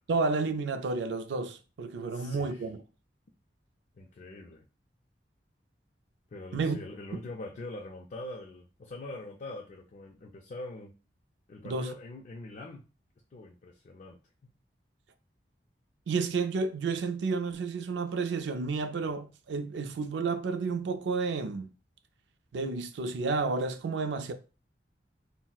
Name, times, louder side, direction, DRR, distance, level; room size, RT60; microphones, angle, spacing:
voice 1, 0.1-2.8 6.5-6.8 7.1-7.2 11.6-11.9 16.1-21.7 22.5-24.3, right 4 dB, 75° right, 0.4 m, -31 dB
voice 2, 2.1-2.7 3.9-4.7 6.3-11.0 11.5-12.9 13.3-14.5, left 2 dB, 45° left, 0.3 m, -43 dB
3.9 x 2.0 x 2.3 m
head